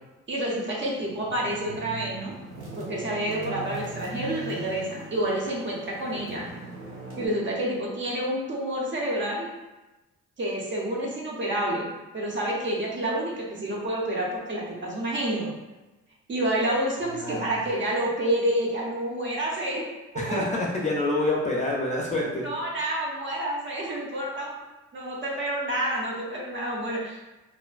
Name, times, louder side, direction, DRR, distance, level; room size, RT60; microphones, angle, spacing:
voice 1, 0.3-2.3 2.8-6.5 7.2-9.5 10.4-11.9 12.1-15.5 16.3-19.9 20.3-20.5 22.4-24.6 24.9-27.2, right 1 dB, 40° right, -3 dB, 0.7 m, -28 dB
sound 1, 0.9-7.3, right 2 dB, 75° right, 1.5 m, -40 dB
voice 2, 17.2-17.5 20.2-22.4, left 2 dB, 25° left, -4 dB, 0.5 m, -27 dB
2.4 x 2.1 x 2.4 m, 1.1 s
cardioid pair, 90°, 30 cm